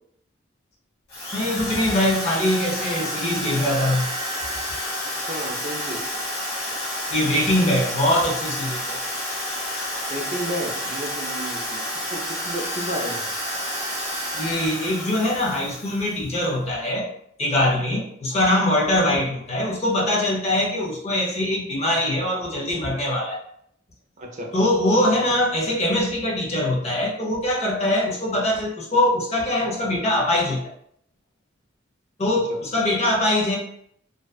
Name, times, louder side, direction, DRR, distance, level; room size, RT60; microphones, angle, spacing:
Drill, 1.1-16.3, equal, 55° left, 1.0 m, -30 dB
voice 1, 1.3-4.1 7.1-9.0 14.3-17.1 17.4-23.4 24.5-30.7 32.2-33.6, left 1 dB, 35° left, -3 dB, 0.5 m, -22 dB
voice 2, 5.0-6.0 10.1-13.3 17.9-18.0 24.2-24.5, equal, 40° right, 1 dB, 0.5 m, -32 dB
2.6 x 2.2 x 2.3 m, 0.69 s
head